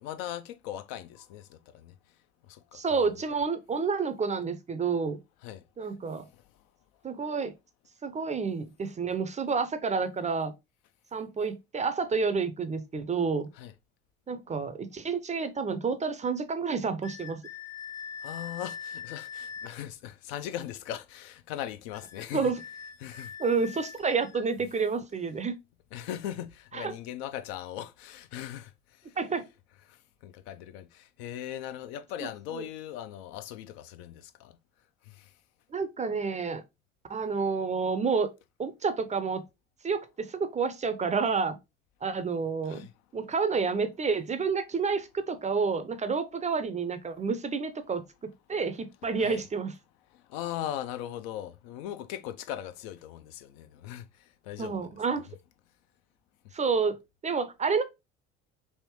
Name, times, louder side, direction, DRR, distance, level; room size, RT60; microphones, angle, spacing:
voice 1, 0.0-1.9 2.5-3.2 5.4-5.6 6.3-6.4 13.6-13.7 18.2-22.5 23.0-23.3 25.9-28.7 29.9-30.0 30.2-34.6 35.1-35.3 42.7-42.9 49.2-49.4 50.1-54.9, left 11 dB, 65° left, 0.4 m, -39 dB
voice 2, 2.7-5.2 5.8-6.3 7.0-7.5 8.0-10.5 11.1-13.5 14.3-17.4 22.3-22.6 23.4-25.6 26.7-26.9 29.2-29.4 32.2-32.6 35.7-36.6 37.1-38.3 38.6-39.4 39.8-41.6 42.0-42.8 43.1-49.7 54.6-55.3 56.5-57.0 57.2-57.8, right 5 dB, 20° right, 0.5 m, -29 dB
sound 1, 17.0-19.8 21.9-24.5, left 7 dB, 45° left, 0.8 m, -42 dB
3.4 x 2.6 x 2.9 m
hypercardioid pair, 60°, 35 cm